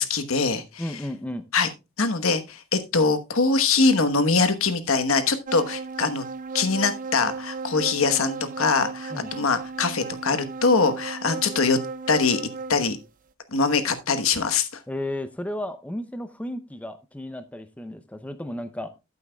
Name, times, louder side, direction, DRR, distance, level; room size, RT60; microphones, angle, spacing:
voice 1, 0.0-1.0 1.5-1.7 2.0-6.2 6.5-11.8 12.1-12.4 12.7-13.0 13.5-14.8, left 4 dB, 70° left, 9 dB, 1.2 m, -23 dB
voice 2, 0.8-1.5 9.1-9.3 14.9-18.9, left 1 dB, 5° left, 10 dB, 0.6 m, -33 dB
sound 1, 5.5-12.9, right 4 dB, 40° right, 0.4 m, -35 dB
14.0 x 8.2 x 2.3 m, 0.25 s
head